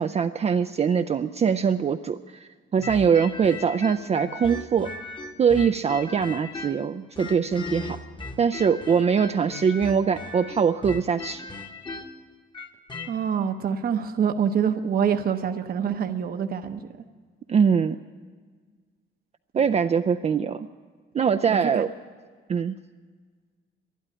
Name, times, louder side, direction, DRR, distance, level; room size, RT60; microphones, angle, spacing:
voice 1, 0.0-4.9 5.4-8.0 8.4-11.4 17.5-18.0 19.6-20.7 21.1-21.9 22.5-22.7, right 6 dB, 35° right, 8 dB, 0.4 m, -23 dB
sound 1, 2.8-6.9 7.2-13.1, left 3 dB, 25° left, 1.1 m, -37 dB
voice 2, 13.0-16.8 21.5-21.8, right 7 dB, 50° right, 7 dB, 0.8 m, -26 dB
12.0 x 11.0 x 10.0 m, 1.5 s
cardioid pair, 90°, 20 cm